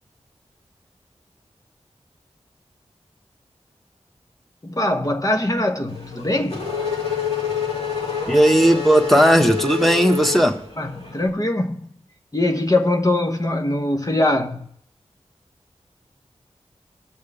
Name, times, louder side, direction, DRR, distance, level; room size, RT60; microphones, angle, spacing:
voice 1, 4.6-6.7 10.8-11.9 12.3-14.7, left 1 dB, 30° left, 1.1 m, -22 dB
Race car auto racing / Accelerating revving vroom, 5.9-11.2, left 7 dB, 60° left, 3.0 m, -27 dB
voice 2, 8.3-10.5, right 1 dB, ahead, 1.5 m, -16 dB
19.5 x 6.5 x 3.5 m
cardioid pair, 40°, 12 cm